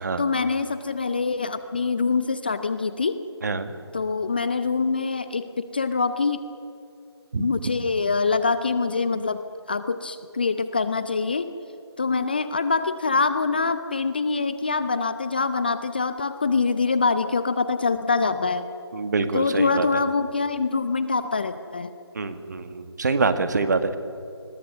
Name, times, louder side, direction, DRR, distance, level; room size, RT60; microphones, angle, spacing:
voice 1, 0.2-3.2 3.9-6.4 7.4-9.4 9.7-11.5 12.0-18.6 19.3-21.9, left 4 dB, 20° left, 12 dB, 0.5 m, -24 dB
voice 2, 3.4-3.7 7.3-7.5 18.9-19.9 22.1-24.0, right 4 dB, 40° right, 10 dB, 1.6 m, -25 dB
28.5 x 21.5 x 6.8 m, 2.6 s
figure-of-eight pair, 155°, 14 cm